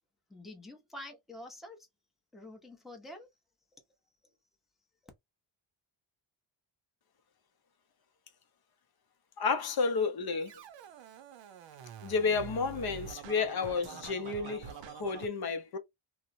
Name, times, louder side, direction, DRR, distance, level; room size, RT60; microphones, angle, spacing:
voice 1, 0.3-1.9 2.3-3.3, left 1 dB, ahead, 0.6 m, -47 dB
voice 2, 9.4-10.5 12.0-15.8, left 4 dB, 50° left, 0.6 m, -31 dB
Scratching (performance technique), 10.4-15.3, right 7 dB, 65° right, 0.6 m, -46 dB
3.0 x 2.1 x 2.5 m
cardioid pair, 115°, 48 cm